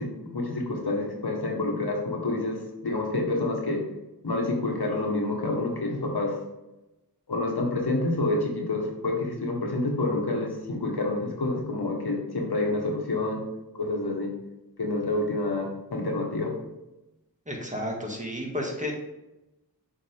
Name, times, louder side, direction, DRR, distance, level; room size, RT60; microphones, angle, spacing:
voice 1, 0.0-3.8 4.2-6.4 7.3-13.4 13.8-14.3 14.8-16.5, left 2 dB, 80° left, 0 dB, 1.5 m, -28 dB
voice 2, 17.5-18.9, left 1 dB, 20° right, -1 dB, 1.7 m, -32 dB
6.9 x 4.7 x 3.5 m, 0.97 s
wide cardioid pair, 45°, 38 cm